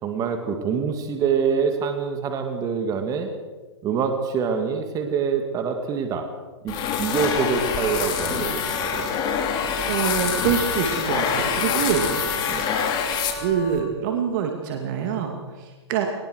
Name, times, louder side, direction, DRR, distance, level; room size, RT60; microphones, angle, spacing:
voice 1, 0.0-3.3 3.8-6.3 6.6-9.1 12.5-12.8, right 6 dB, 25° right, 6 dB, 2.4 m, -25 dB
sound 1, 6.7-13.8, left 7 dB, 30° left, 3.0 m, -26 dB
Wind instrument woodwind instrument, 6.9-13.9, left 1 dB, 50° left, 5.1 m, -34 dB
voice 2, 9.9-12.1 13.4-16.1, right 8 dB, 45° right, 3 dB, 2.7 m, -25 dB
21.0 x 19.5 x 6.5 m, 1.3 s
hypercardioid pair, 130°, 14 cm